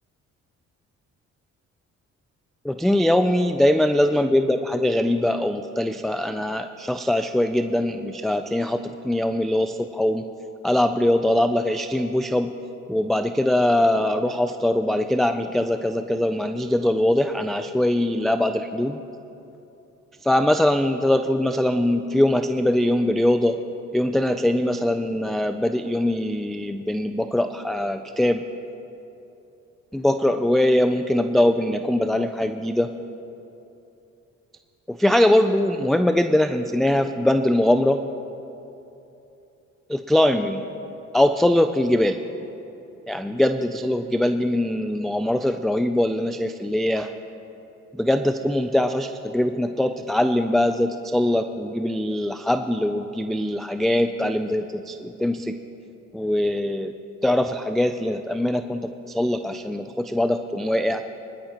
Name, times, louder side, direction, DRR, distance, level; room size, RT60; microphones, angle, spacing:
voice 1, 2.6-10.2 10.6-12.5 12.9-19.0 20.2-23.6 23.9-28.4 29.9-32.9 34.9-38.0 39.9-40.6 41.1-42.2 43.1-47.1 48.0-55.6 56.1-56.9 57.2-61.0, left 1 dB, ahead, 8 dB, 0.3 m, -22 dB
21.5 x 11.5 x 3.0 m, 2.9 s
cardioid pair, 90°, 30 cm